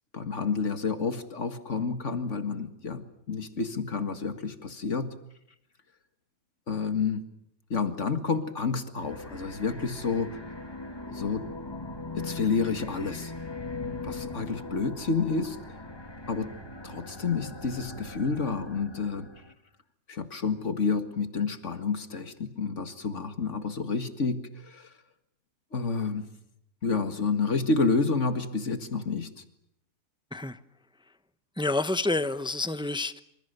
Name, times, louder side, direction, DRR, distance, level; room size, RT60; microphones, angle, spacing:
voice 1, 0.1-5.1 6.7-7.3 7.7-10.4 11.1-11.5 12.2-13.3 14.0-15.8 16.3-16.5 16.8-19.3 20.1-24.9 25.7-26.3 26.8-29.4, left 4 dB, 50° left, 9 dB, 2.2 m, -29 dB
sound 1, 8.9-19.5, left 2 dB, 15° left, 2.0 m, -40 dB
voice 2, 31.6-33.2, left 2 dB, 5° right, 12 dB, 0.6 m, -28 dB
27.0 x 26.5 x 6.8 m, 0.76 s
omnidirectional pair, 1.7 m